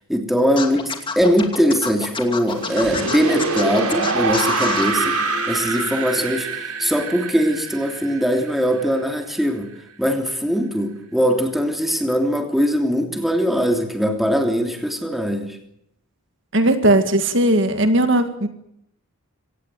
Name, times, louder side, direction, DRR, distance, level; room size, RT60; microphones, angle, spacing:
voice 1, 0.1-9.7 10.0-15.6, equal, ahead, 4 dB, 3.0 m, -21 dB
Scratching (performance technique), 0.6-4.9, left 4 dB, 20° left, 2.5 m, -27 dB
sound 1, 2.5-9.4, right 3 dB, 85° right, 5.0 m, -25 dB
voice 2, 16.5-18.5, right 1 dB, 55° right, 8 dB, 2.0 m, -17 dB
24.5 x 18.5 x 9.1 m, 0.75 s
head